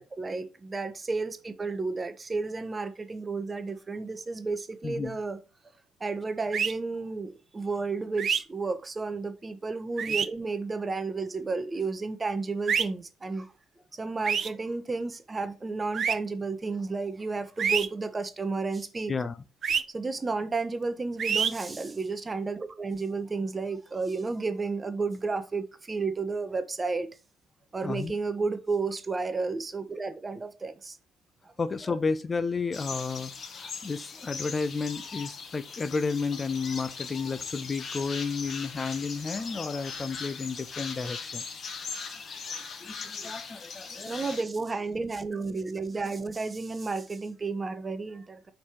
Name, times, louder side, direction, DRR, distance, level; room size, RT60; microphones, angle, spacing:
voice 1, 0.0-5.4 6.0-13.5 14.0-19.1 19.9-27.1 27.7-31.0 43.9-48.5, right 3 dB, 25° right, 1.0 m, -32 dB
voice 2, 4.8-5.2 19.1-19.4 27.8-28.1 31.6-41.4 42.5-44.2, left 4 dB, 30° left, 0.5 m, -32 dB
sound 1, 6.5-6.7 8.2-8.4 10.0-10.3 12.7-12.8 14.2-14.5 15.9-16.1 17.6-17.9 19.6-19.8 21.2-21.5, right 7 dB, 45° right, 0.6 m, -26 dB
sound 2, 32.7-44.4, left 5 dB, 45° left, 1.4 m, -39 dB
5.5 x 4.7 x 4.6 m
figure-of-eight pair, 50°, 0 cm